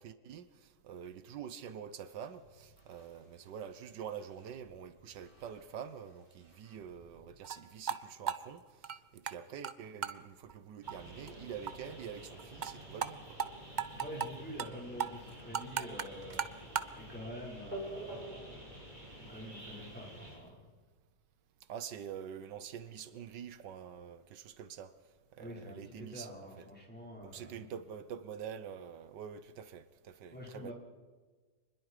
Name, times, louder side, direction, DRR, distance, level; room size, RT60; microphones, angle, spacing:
voice 1, 0.0-13.4 21.7-24.9 25.3-26.3 26.6-26.7 27.2-30.7, right 8 dB, 85° right, 1.6 m, -46 dB
sound 1, 2.1-7.4, equal, 45° left, 7.3 m, -67 dB
sound 2, 7.4-7.6 7.9-8.0 8.3-9.3 9.6-9.7 10.0-10.2 10.5-10.6 10.9-11.0 11.3-11.4 11.7-11.8 12.0-12.1 12.4-12.7 13.0-13.1 13.4-13.5 13.8-14.3 14.6-14.7 15.0-16.9, right 7 dB, 60° right, 0.4 m, -35 dB
sound 3, 10.8-20.4, right 1 dB, 25° right, 6.0 m, -48 dB
voice 2, 13.9-16.4 17.0-18.6 19.2-20.6 25.4-27.7 30.3-30.7, left 1 dB, 5° left, 5.6 m, -46 dB
25.5 x 21.0 x 5.0 m
omnidirectional pair, 1.9 m